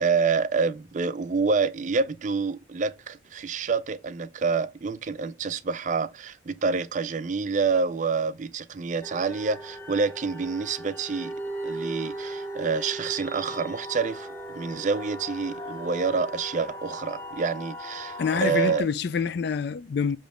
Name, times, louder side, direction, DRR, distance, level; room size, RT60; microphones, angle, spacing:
voice 1, 0.0-11.3 11.6-18.9, right 5 dB, 40° right, 0.4 m, -27 dB
sound 1, 9.0-18.8, right 1 dB, 10° left, 0.7 m, -37 dB
voice 2, 18.2-20.2, left 6 dB, 60° left, 0.3 m, -26 dB
7.1 x 3.1 x 5.0 m
head